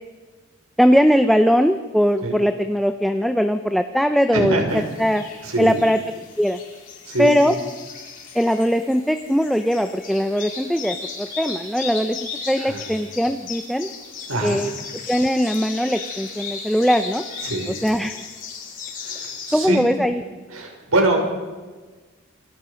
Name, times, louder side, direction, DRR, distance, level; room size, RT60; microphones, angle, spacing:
voice 1, 0.8-4.6 5.0-5.2 5.6-6.0 6.4-6.6 7.2-7.5 8.3-12.2 12.5-13.9 14.4-14.7 15.1-17.2 17.8-18.2 19.5-20.2, equal, ahead, 7 dB, 0.7 m, -20 dB
voice 2, 4.3-4.8 5.4-5.8 7.1-7.5 12.6-12.8 14.3-14.6 17.4-17.7 19.0-19.9 20.5-21.2, right 2 dB, 85° right, 2 dB, 5.9 m, -24 dB
sound 1, 4.7-19.7, left 5 dB, 40° left, 4.7 m, -36 dB
28.5 x 24.0 x 5.2 m, 1.4 s
head